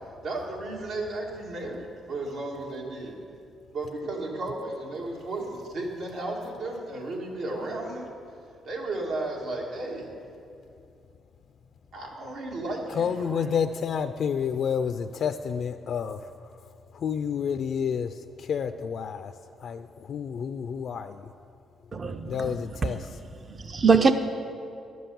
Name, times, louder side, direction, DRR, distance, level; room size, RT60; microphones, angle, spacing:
voice 1, 0.2-3.2 3.7-8.1 8.6-10.2 11.9-13.6, right 2 dB, 80° right, -1 dB, 2.2 m, -34 dB
voice 2, 13.0-16.2 16.9-19.3 19.6-21.2 22.3-23.1, left 7 dB, 60° left, 8 dB, 0.4 m, -29 dB
voice 3, 21.9-22.5 23.6-24.1, right 5 dB, 35° right, 8 dB, 0.6 m, -22 dB
11.0 x 7.8 x 7.0 m, 2.5 s
cardioid pair, 90°, 0 cm